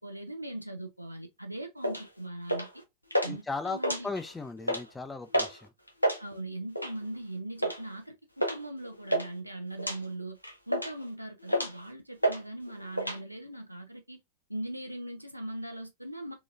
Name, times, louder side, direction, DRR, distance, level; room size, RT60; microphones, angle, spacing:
voice 1, 0.0-2.8 3.2-4.1 6.2-10.4 10.7-14.2 14.5-16.3, right 1 dB, 90° right, 0.7 m, -40 dB
sound 1, 1.8-2.0 2.5-2.8 3.1-3.3 3.7-4.3 4.6-4.8 5.3-5.6 5.9-6.2 6.8-7.0 7.6-7.8 8.4-8.6 8.8-9.3 9.8-10.0 10.4-11.0 11.5-11.8 12.2-12.4 12.7-13.2, equal, 90° left, 0.7 m, -29 dB
voice 2, 3.3-5.7, left 3 dB, 10° left, 0.5 m, -37 dB
3.8 x 3.0 x 2.4 m
figure-of-eight pair, 90°, 0 cm